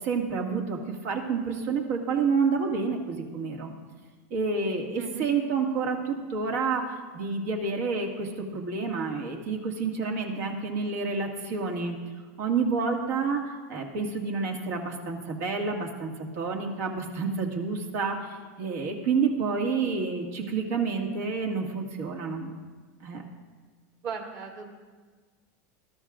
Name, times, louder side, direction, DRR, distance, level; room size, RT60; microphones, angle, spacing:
voice 1, 0.0-3.7 4.3-12.0 12.4-22.5 23.0-23.2, right 4 dB, 60° right, 1 dB, 2.0 m, -29 dB
voice 2, 5.0-5.3 24.0-24.7, right 5 dB, 35° right, 1 dB, 2.1 m, -37 dB
20.0 x 13.0 x 2.5 m, 1.4 s
supercardioid pair, 155°, 9 cm